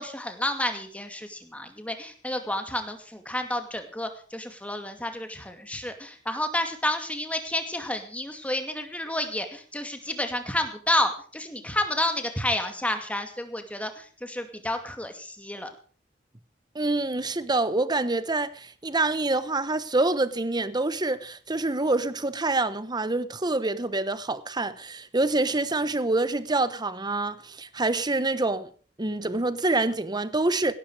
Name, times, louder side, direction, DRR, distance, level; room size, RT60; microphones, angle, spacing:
voice 1, 0.0-15.7, left 1 dB, 10° left, 2.4 m, -30 dB
voice 2, 16.7-28.7 29.0-30.7, right 2 dB, 25° right, 1.0 m, -26 dB
17.0 x 12.5 x 4.9 m
head